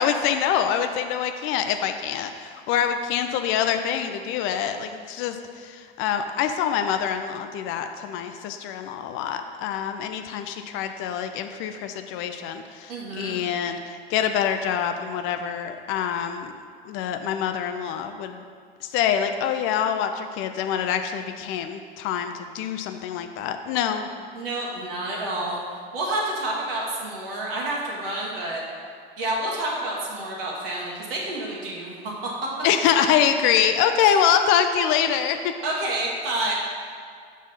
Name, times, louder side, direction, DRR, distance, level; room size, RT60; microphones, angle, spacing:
voice 1, 0.0-16.5 16.9-18.4 18.9-24.0 32.6-35.5, left 8 dB, 40° left, 7 dB, 0.5 m, -25 dB
voice 2, 12.9-13.4 24.0-25.6 25.9-28.6 29.2-32.3 34.0-34.1 35.6-36.5, right 1 dB, 65° right, -3 dB, 1.4 m, -29 dB
6.1 x 3.6 x 5.5 m, 2.2 s
figure-of-eight pair, 75°, 30 cm